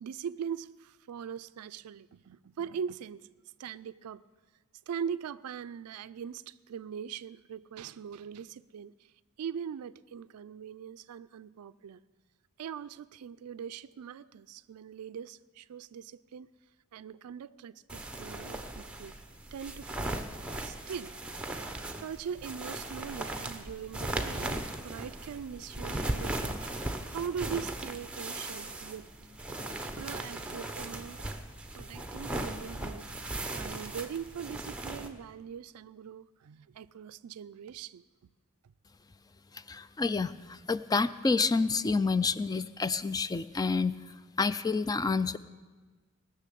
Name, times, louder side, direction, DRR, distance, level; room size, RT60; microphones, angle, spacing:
voice 1, 0.0-3.3 3.6-4.2 4.9-8.9 9.4-12.0 12.6-16.5 16.9-19.2 19.5-20.2 20.6-21.2 22.0-26.6 27.1-29.1 30.0-31.3 31.8-33.1 33.5-38.0, right 7 dB, 85° right, 0.4 m, -41 dB
sound 1, 17.9-35.1, right 2 dB, 5° right, 0.8 m, -38 dB
voice 2, 39.5-43.9 44.4-45.4, left 4 dB, 15° left, 0.3 m, -28 dB
19.0 x 6.6 x 8.4 m
head